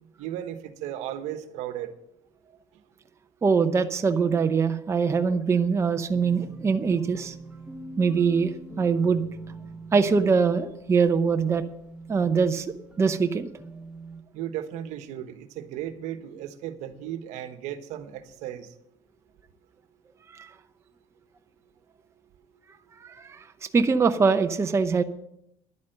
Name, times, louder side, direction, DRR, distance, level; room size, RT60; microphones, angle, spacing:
voice 1, 0.2-1.9 14.3-18.7, right 11 dB, 70° right, 9 dB, 1.2 m, -35 dB
voice 2, 3.4-7.3 8.0-9.2 9.9-11.6 12.1-12.7 13.0-13.5 20.3-20.5 23.0-25.0, right 5 dB, 20° right, 7 dB, 0.7 m, -23 dB
sound 1, 6.1-14.2, right 3 dB, 5° right, 1.0 m, -43 dB
11.0 x 8.5 x 6.6 m, 0.78 s
cardioid pair, 110°, 12 cm